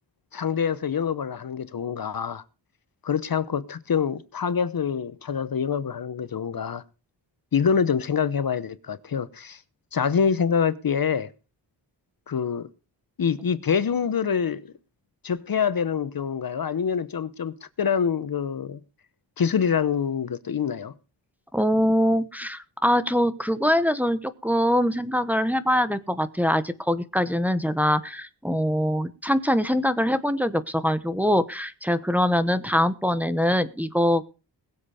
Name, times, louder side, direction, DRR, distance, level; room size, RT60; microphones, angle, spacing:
voice 1, 0.3-2.4 3.0-6.8 7.5-9.6 9.9-11.3 12.3-12.7 13.2-14.7 15.2-18.8 19.4-20.9, left 7 dB, 50° left, 0.9 m, -25 dB
voice 2, 21.5-34.2, equal, 5° right, 1.0 m, -23 dB
21.0 x 7.7 x 4.9 m
wide cardioid pair, 175°, 44 cm